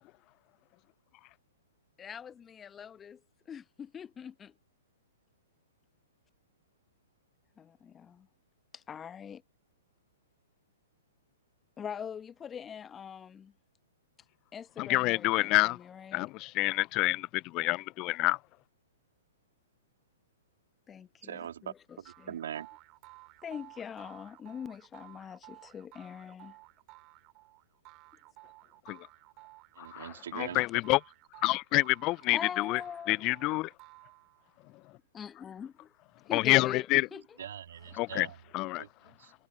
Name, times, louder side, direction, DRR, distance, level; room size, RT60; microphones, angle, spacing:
voice 1, 2.0-3.2 3.5-4.5 7.6-8.3 8.7-9.4 11.8-13.5 14.5-16.3 20.9-22.4 23.4-26.6 30.5-30.6 32.3-33.3 35.1-35.9 36.3-37.4, left 8 dB, 20° left, 1.0 m, -43 dB
voice 2, 14.8-15.8 16.1-18.4 28.9-29.0 29.8-31.0 31.4-32.8 33.1-33.7 36.3-37.0 38.0-38.3 38.5-38.8, left 21 dB, 35° left, 0.3 m, -27 dB
voice 3, 21.2-22.7 29.7-30.6 37.4-38.4 38.8-39.3, right 9 dB, 65° right, 3.0 m, -42 dB
sound 1, 22.0-34.6, right 23 dB, 35° right, 6.5 m, -55 dB
hypercardioid pair, 120°, 0 cm